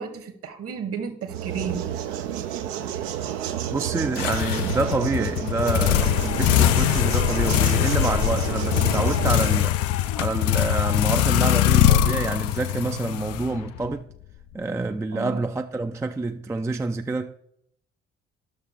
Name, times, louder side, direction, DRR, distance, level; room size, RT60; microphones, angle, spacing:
voice 1, 0.0-1.9 15.1-15.4, right 6 dB, 45° right, 1.2 m, -33 dB
sound 1, 1.3-9.7, right 10 dB, 70° right, 0.6 m, -30 dB
voice 2, 3.7-9.8 10.2-14.1 14.5-17.4, right 3 dB, 10° right, 0.4 m, -27 dB
sound 2, 4.2-13.9, left 13 dB, 50° left, 0.5 m, -22 dB
11.0 x 6.4 x 3.4 m
figure-of-eight pair, 45°, 31 cm